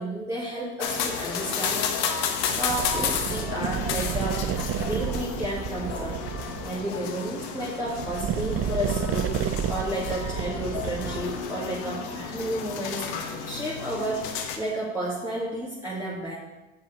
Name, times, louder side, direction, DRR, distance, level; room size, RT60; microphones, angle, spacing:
voice 1, 0.0-4.4 4.8-6.2 6.6-9.4 9.7-16.4, right 1 dB, 5° right, -8 dB, 2.3 m, -32 dB
sound 1, 0.8-14.6, left 7 dB, 75° left, 1.3 m, -32 dB
sound 2, 2.4-6.9 7.8-11.5, right 9 dB, 40° right, 0.6 m, -31 dB
7.0 x 5.7 x 6.6 m, 1.1 s
supercardioid pair, 80°, 35 cm